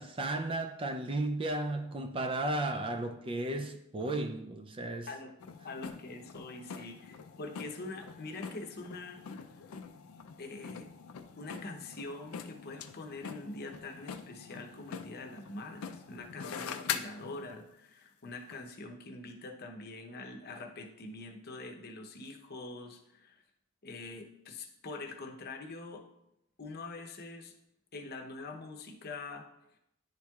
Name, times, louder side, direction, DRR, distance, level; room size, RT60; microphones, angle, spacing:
voice 1, 0.0-5.1, right 2 dB, 25° right, 0.4 m, -34 dB
sound 1, 5.4-17.6 18.5-18.6, left 7 dB, 75° left, 0.4 m, -44 dB
voice 2, 5.6-9.5 10.4-10.9 11.4-23.4 23.8-26.0 26.6-27.5 27.9-29.4, left 2 dB, 45° left, 0.7 m, -44 dB
10.5 x 4.5 x 2.3 m
head